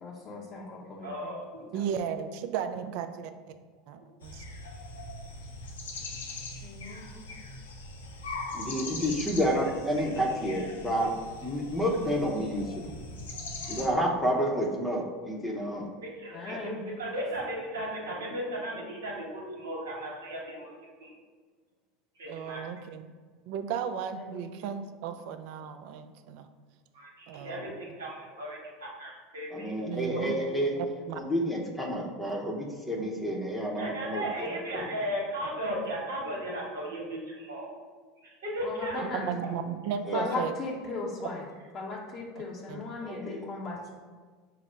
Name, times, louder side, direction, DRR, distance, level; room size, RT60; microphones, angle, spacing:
voice 1, 0.0-1.4 1.7-1.9 6.6-7.2 16.3-16.8 24.2-24.5 38.6-39.3 40.1-41.4 41.7-43.9, left 3 dB, 40° left, -3 dB, 0.6 m, -37 dB
voice 2, 1.0-1.4 16.0-16.7 17.0-20.7 21.0-21.1 22.2-22.6 26.9-30.3 33.8-37.7 38.2-39.0 39.4-39.5, right 1 dB, 85° right, -2 dB, 1.1 m, -36 dB
voice 3, 1.7-3.3 3.9-4.4 22.3-23.1 23.5-26.5 27.3-27.7 29.9-30.3 31.1-31.2 39.0-40.5 42.7-42.8, right 8 dB, 65° right, 9 dB, 0.3 m, -35 dB
sound 1, 4.2-13.9, left 2 dB, 85° left, 0.5 m, -41 dB
voice 4, 8.5-11.1 11.4-12.9 13.7-15.9 16.5-16.6 29.5-30.7 31.1-34.5 34.7-34.9 40.0-40.4 43.0-43.5, equal, 5° left, -2 dB, 0.7 m, -30 dB
4.8 x 2.0 x 4.3 m, 1.5 s
hypercardioid pair, 85°, 0 cm